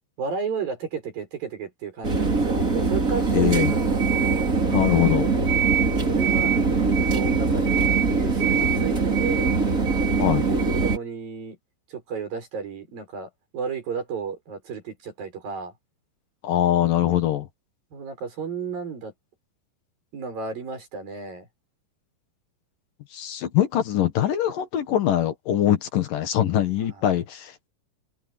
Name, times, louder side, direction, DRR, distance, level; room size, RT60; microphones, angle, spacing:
voice 1, 0.2-4.5 6.1-9.6 10.1-11.6 11.9-15.7 17.9-19.1 20.1-21.5, right 6 dB, 65° right, 8.2 m, -33 dB
sound 1, 2.0-11.0, right 4 dB, 25° right, 3.1 m, -22 dB
voice 2, 3.3-3.7 4.7-5.3 10.2-10.5 16.4-17.5 23.1-27.7, left 11 dB, 65° left, 3.0 m, -23 dB
omnidirectional pair, 4.3 m